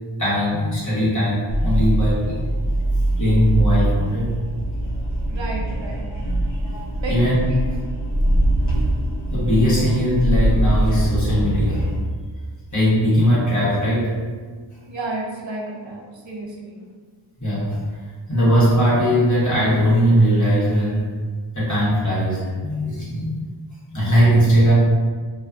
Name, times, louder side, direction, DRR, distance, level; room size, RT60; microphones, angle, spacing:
voice 1, 0.2-2.5 3.2-4.3 7.1-7.4 7.7-7.8 9.3-11.8 12.7-14.1 15.5-15.6 17.4-17.8 18.3-21.0 21.5-23.3 23.9-24.7, equal, 35° left, -9 dB, 1.3 m, -19 dB
sound 1, 1.5-12.0, right 1 dB, 60° left, 1.0 m, -22 dB
voice 2, 5.3-6.1 7.0-7.1 7.5-7.6 14.9-16.8, right 2 dB, 70° right, -1 dB, 0.6 m, -31 dB
2.6 x 2.3 x 2.5 m, 1.5 s
wide cardioid pair, 75°, 48 cm